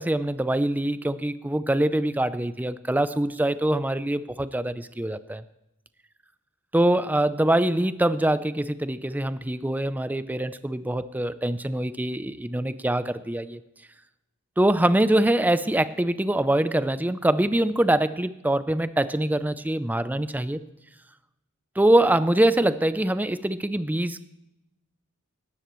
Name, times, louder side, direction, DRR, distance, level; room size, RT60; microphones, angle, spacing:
voice 1, 0.0-5.4 6.7-13.6 14.6-20.6 21.8-24.2, right 1 dB, 10° right, 13 dB, 0.5 m, -24 dB
18.0 x 13.5 x 3.1 m, 0.90 s
head